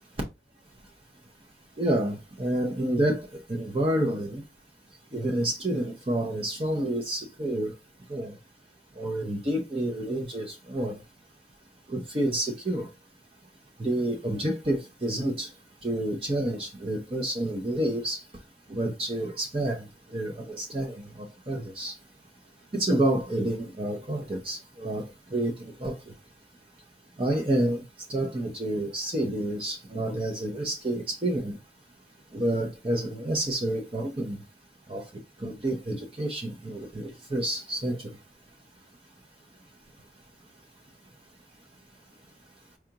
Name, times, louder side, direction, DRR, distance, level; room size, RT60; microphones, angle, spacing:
voice 1, 1.8-4.4 5.1-7.7 8.1-8.3 9.0-11.0 11.9-12.9 13.8-15.5 15.8-18.2 18.7-22.0 22.7-25.0 25.3-26.1 27.2-27.8 28.1-31.6 32.3-34.4 34.9-35.1 35.4-38.1, right 1 dB, 30° right, 0.6 m, -29 dB
4.7 x 2.4 x 2.8 m
head